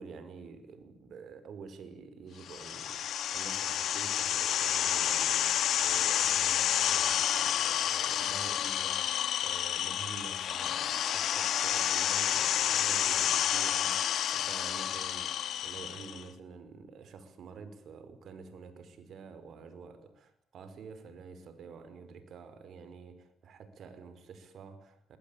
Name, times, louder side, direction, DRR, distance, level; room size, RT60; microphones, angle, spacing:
voice 1, 0.0-25.2, right 5 dB, 65° right, 5.1 m, -48 dB
sound 1, 2.5-16.2, left 10 dB, 70° left, 1.7 m, -30 dB
27.0 x 21.5 x 9.0 m
cardioid pair, 90°, 0 cm